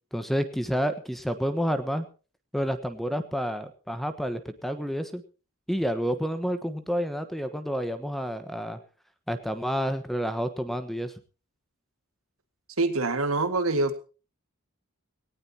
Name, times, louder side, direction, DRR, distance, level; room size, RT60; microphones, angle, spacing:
voice 1, 0.1-2.1 2.5-5.2 5.7-8.8 9.3-11.1, equal, ahead, 10 dB, 1.2 m, -29 dB
voice 2, 12.8-14.0, right 2 dB, 70° right, 10 dB, 2.0 m, -25 dB
19.0 x 18.0 x 2.9 m, 0.35 s
head